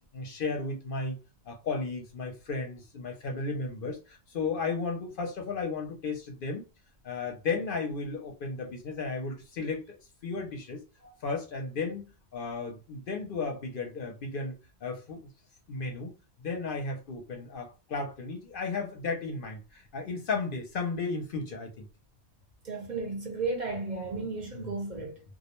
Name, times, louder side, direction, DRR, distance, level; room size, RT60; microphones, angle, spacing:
voice 1, 0.1-1.2 1.5-6.6 7.0-10.0 10.2-10.8 11.2-12.0 12.3-14.6 14.8-15.3 15.7-16.1 16.4-21.9 24.5-24.7, left 4 dB, 60° left, 0.7 m, -34 dB
voice 2, 22.6-25.2, right 3 dB, 45° right, 0.8 m, -34 dB
2.3 x 2.1 x 2.9 m
omnidirectional pair, 1.1 m